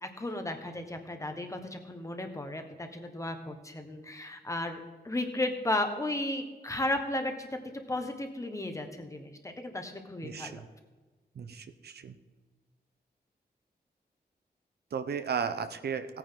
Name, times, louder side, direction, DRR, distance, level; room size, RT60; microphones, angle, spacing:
voice 1, 0.0-7.6 7.9-10.6, left 1 dB, 20° left, 6 dB, 1.4 m, -34 dB
voice 2, 10.2-10.6 11.4-12.1 14.9-16.1, right 6 dB, 75° right, 10 dB, 0.8 m, -34 dB
16.5 x 9.3 x 3.8 m, 1.2 s
wide cardioid pair, 130°, 17 cm